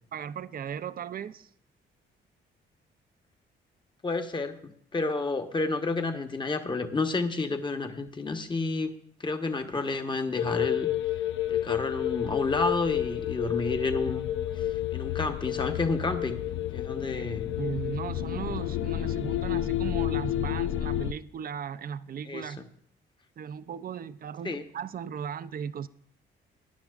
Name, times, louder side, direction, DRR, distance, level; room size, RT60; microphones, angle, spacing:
voice 1, 0.1-1.5 17.1-17.3 17.6-22.6 23.4-25.9, right 8 dB, 50° right, 0.6 m, -37 dB
voice 2, 4.0-8.9 9.2-10.9 11.5-14.2 14.6-16.4 16.7-17.5 22.3-22.5 24.4-24.6, left 3 dB, 25° left, 1.1 m, -30 dB
sound 1, 10.4-21.1, left 12 dB, 75° left, 0.4 m, -30 dB
19.0 x 10.5 x 2.5 m
cardioid pair, 90°, 20 cm